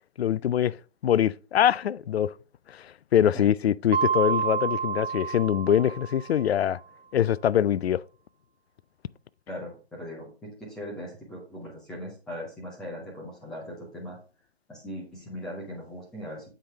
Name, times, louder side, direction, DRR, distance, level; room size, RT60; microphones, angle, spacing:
voice 1, 0.2-0.8 1.0-2.3 2.7-6.8 7.1-8.0, left 10 dB, 75° left, 0.5 m, -24 dB
Mallet percussion, 3.9-6.5, right 7 dB, 70° right, 0.6 m, -29 dB
voice 2, 9.5-14.2 14.7-16.5, equal, ahead, 0.6 m, -39 dB
7.6 x 5.1 x 3.4 m
hypercardioid pair, 160°, 32 cm